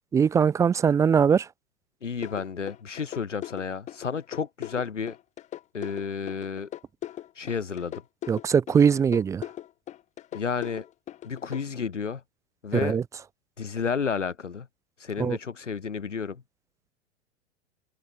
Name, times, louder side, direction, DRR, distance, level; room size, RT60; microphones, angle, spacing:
voice 1, 0.1-1.5 8.3-9.4 12.7-13.0 15.2-15.4, right 7 dB, 10° right, 0.4 m, -21 dB
voice 2, 2.0-5.2 5.7-6.7 7.3-8.0 10.3-10.8 11.2-12.2 12.6-13.0 13.6-14.7 15.0-16.4, left 6 dB, 85° left, 1.0 m, -31 dB
sound 1, 2.2-11.6, left 12 dB, 20° left, 0.8 m, -39 dB
figure-of-eight pair, 90°, 36 cm